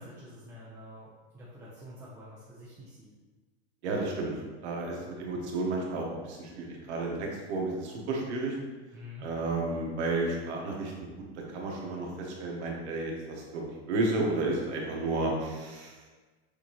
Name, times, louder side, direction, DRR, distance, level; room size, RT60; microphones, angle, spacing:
voice 1, 0.0-3.1 5.0-5.2 8.9-9.3, left 1 dB, 10° right, -8 dB, 0.7 m, -48 dB
voice 2, 3.8-4.3 4.6-8.6 9.2-11.1 11.3-13.6 13.9-16.0, right 2 dB, 90° right, -1 dB, 1.2 m, -32 dB
6.4 x 2.6 x 3.0 m, 1.3 s
supercardioid pair, 135°, 33 cm